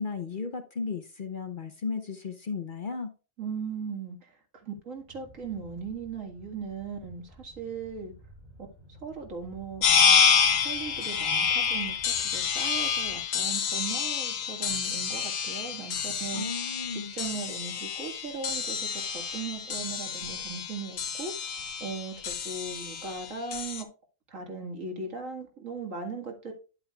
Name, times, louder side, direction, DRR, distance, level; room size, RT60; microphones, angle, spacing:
voice 1, 0.0-3.1 16.3-17.1, left 4 dB, 45° left, 0.8 m, -35 dB
voice 2, 3.4-4.3 4.6-8.1 8.9-9.9 10.5-21.5 21.8-23.9 24.3-26.5, right 5 dB, 75° right, 2.2 m, -38 dB
sound 1, 5.1-13.2, equal, 30° right, 5.6 m, -53 dB
sound 2, 9.8-23.8, left 6 dB, 75° left, 1.2 m, -28 dB
10.0 x 8.1 x 2.3 m
omnidirectional pair, 1.4 m